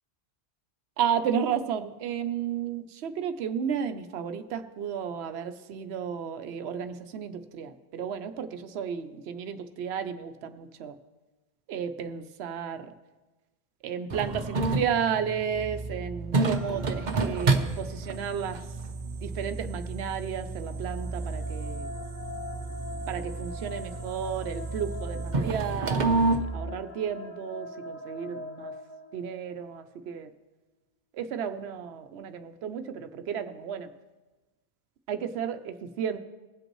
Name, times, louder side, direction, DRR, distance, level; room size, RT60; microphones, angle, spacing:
voice 1, 1.0-11.0 11.7-12.9 13.8-18.7 19.2-21.9 23.1-28.7 29.1-30.3 31.1-33.9 35.1-36.2, right 7 dB, 85° right, 8 dB, 0.9 m, -33 dB
sound 1, 14.1-26.4, right 3 dB, 50° right, 0.9 m, -31 dB
sound 2, 15.5-26.7, right 3 dB, 25° left, 2.1 m, -38 dB
sound 3, 20.4-29.7, left 2 dB, 45° left, 0.9 m, -43 dB
23.0 x 7.9 x 3.0 m, 1.2 s
omnidirectional pair, 1.1 m